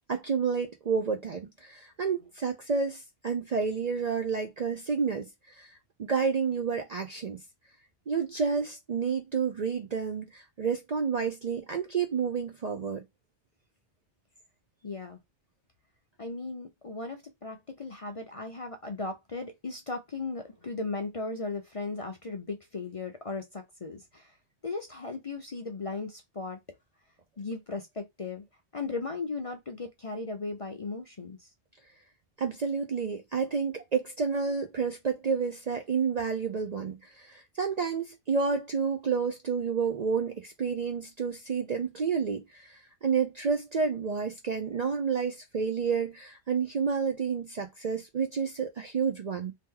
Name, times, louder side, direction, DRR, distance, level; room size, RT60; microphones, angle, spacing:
voice 1, 0.1-7.4 8.1-13.0 32.4-49.5, right 5 dB, 50° right, 0.5 m, -30 dB
voice 2, 14.8-15.2 16.2-24.3 24.6-26.6 27.4-28.4 28.7-31.5, left 3 dB, 40° left, 0.5 m, -37 dB
2.8 x 2.8 x 3.7 m
omnidirectional pair, 1.2 m